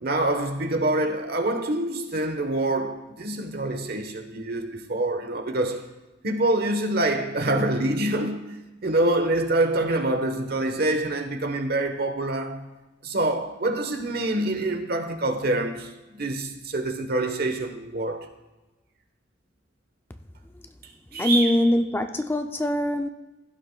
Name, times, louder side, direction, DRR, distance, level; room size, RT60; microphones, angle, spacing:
voice 1, 0.0-5.8 6.2-12.7 13.0-18.3 21.1-21.6, right 2 dB, 60° right, 1.1 m, -26 dB
voice 2, 21.2-23.1, left 1 dB, 10° left, 0.4 m, -23 dB
16.0 x 11.0 x 2.3 m
head